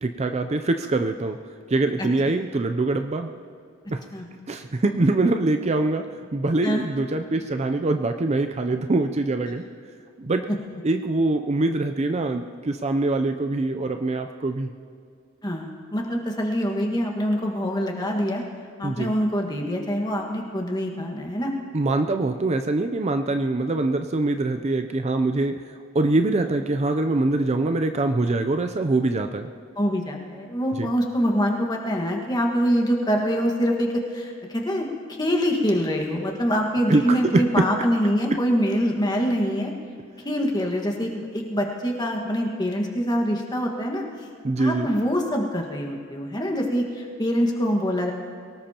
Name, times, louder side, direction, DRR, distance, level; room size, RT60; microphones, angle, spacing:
voice 1, 0.0-1.4 1.7-3.3 3.9-4.0 4.5-6.1 6.3-9.6 10.2-10.5 10.8-14.7 18.8-19.1 21.7-25.5 25.9-29.5 30.8-30.9 36.9-37.6 44.4-44.9, right 2 dB, 30° right, 7 dB, 0.5 m, -23 dB
voice 2, 15.4-18.4 18.8-21.5 29.8-39.7 40.2-44.0 44.6-48.1, equal, 20° left, 1 dB, 1.6 m, -25 dB
23.0 x 18.5 x 2.9 m, 2.3 s
head